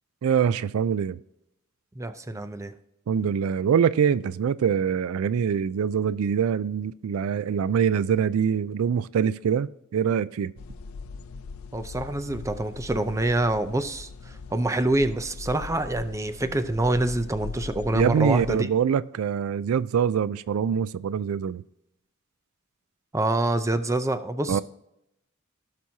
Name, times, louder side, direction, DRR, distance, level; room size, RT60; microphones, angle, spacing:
voice 1, 0.2-1.2 3.1-10.5 17.9-21.6 24.5-24.6, right 7 dB, 85° right, 0.3 m, -24 dB
voice 2, 2.0-2.7 11.7-18.7 23.1-24.6, right 1 dB, 15° right, 0.5 m, -26 dB
sound 1, 10.6-18.6, left 4 dB, 80° left, 0.5 m, -40 dB
16.5 x 6.0 x 2.8 m
head